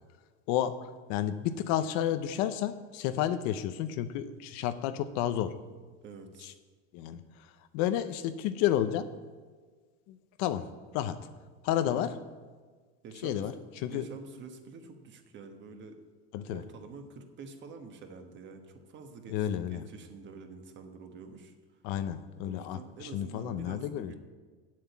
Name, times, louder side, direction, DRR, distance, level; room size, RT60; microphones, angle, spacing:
voice 1, 0.5-0.8 1.1-5.6 6.4-6.5 6.9-7.2 7.7-9.1 10.1-10.7 10.9-11.2 11.6-12.1 13.2-13.5 13.8-14.1 16.3-16.6 19.3-19.8 21.8-24.1, left 11 dB, 60° left, 11 dB, 0.8 m, -31 dB
voice 2, 6.0-6.6 11.8-12.1 13.0-13.5 13.9-16.0 16.5-21.8 22.5-24.2, right 4 dB, 35° right, 5 dB, 1.4 m, -47 dB
7.8 x 7.5 x 8.4 m, 1.5 s
supercardioid pair, 140°, 31 cm